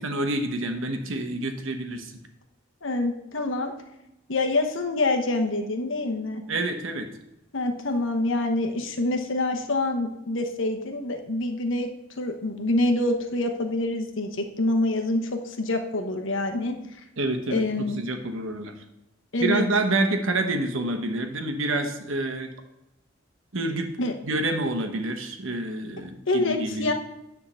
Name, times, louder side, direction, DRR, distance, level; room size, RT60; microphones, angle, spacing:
voice 1, 0.0-2.1 6.5-7.1 17.2-18.7 19.4-22.5 23.5-23.9 24.2-26.9, right 2 dB, 70° right, 5 dB, 1.1 m, -28 dB
voice 2, 2.8-3.7 4.3-6.4 7.5-11.9 12.2-16.8 17.5-18.1 19.3-19.6 24.0-24.1 26.3-26.9, left 2 dB, 65° left, 4 dB, 1.1 m, -26 dB
10.0 x 3.7 x 6.9 m, 0.89 s
head